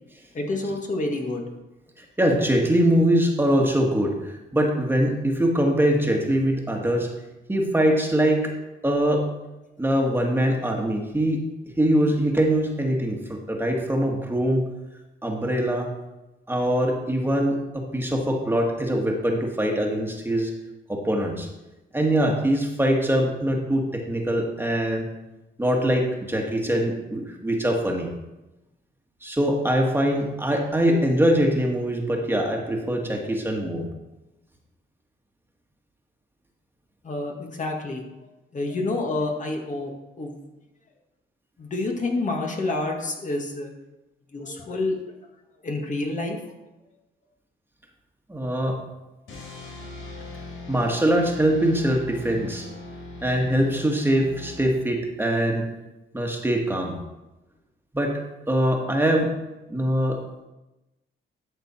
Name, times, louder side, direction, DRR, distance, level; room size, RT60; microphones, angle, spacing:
voice 1, 0.3-1.4 37.0-38.1 38.5-39.9 40.2-40.3 41.6-43.7 44.3-45.0 45.6-46.4, left 2 dB, 40° left, 1 dB, 2.0 m, -28 dB
voice 2, 2.0-7.1 7.5-8.5 8.8-9.3 9.8-11.4 11.8-14.7 15.2-15.9 16.5-20.5 20.9-21.5 21.9-25.1 25.6-28.1 29.2-33.9 48.3-48.8 50.7-52.7 53.2-55.7 56.1-57.0 57.9-58.2 58.5-59.4 59.7-60.2, right 1 dB, 10° right, 1 dB, 1.8 m, -23 dB
sound 1, 49.3-55.1, left 3 dB, 85° left, 4.2 m, -40 dB
12.5 x 6.5 x 4.4 m, 1.0 s
cardioid pair, 90°, 20 cm